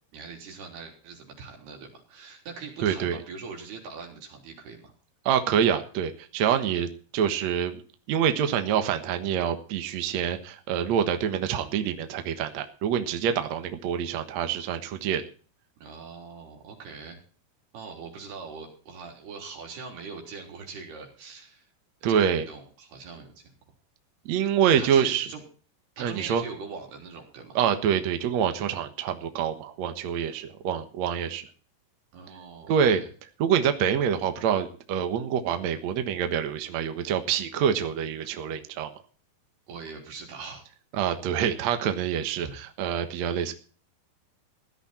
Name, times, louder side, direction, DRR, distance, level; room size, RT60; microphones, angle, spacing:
voice 1, 0.1-4.9 15.8-17.2 17.7-21.7 22.1-23.5 24.6-25.4 26.0-27.6 32.1-33.1 39.7-40.6 42.4-42.5, right 5 dB, 80° right, 2 dB, 5.6 m, -42 dB
voice 2, 2.8-3.2 5.3-6.9 7.1-7.8 8.1-15.2 22.0-22.4 24.3-25.3 26.0-26.4 27.6-31.5 32.7-33.0 33.4-38.9 40.9-43.5, right 8 dB, 60° right, 8 dB, 2.0 m, -26 dB
16.0 x 11.5 x 4.3 m, 0.40 s
omnidirectional pair, 4.5 m